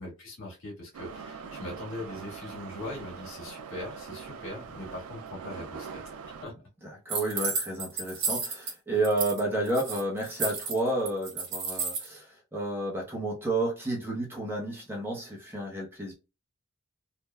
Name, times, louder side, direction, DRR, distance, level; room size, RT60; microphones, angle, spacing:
voice 1, 0.0-6.5, left 1 dB, 75° left, 1.6 m, -41 dB
Subway metro underground, 0.9-6.4, right 6 dB, 80° right, 0.3 m, -43 dB
voice 2, 6.8-16.1, right 2 dB, 10° right, 0.8 m, -31 dB
sound 1, 7.1-8.7 9.0-9.4 9.7-12.1, right 4 dB, 55° right, 1.2 m, -32 dB
3.1 x 2.4 x 2.2 m
head